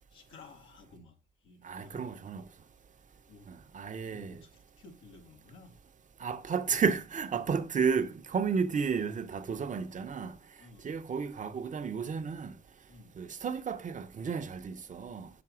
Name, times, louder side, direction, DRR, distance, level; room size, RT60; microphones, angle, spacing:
voice 1, 0.0-2.1 3.3-3.6 4.0-5.8 6.6-6.8 8.5-8.6 10.6-11.0 12.9-13.1, left 3 dB, 90° left, 1.8 m, -55 dB
voice 2, 1.6-2.4 3.5-4.4 6.2-10.4 10.8-12.5 13.2-15.3, right 6 dB, 40° right, 0.7 m, -32 dB
6.0 x 5.3 x 6.1 m
cardioid pair, 90°, 20 cm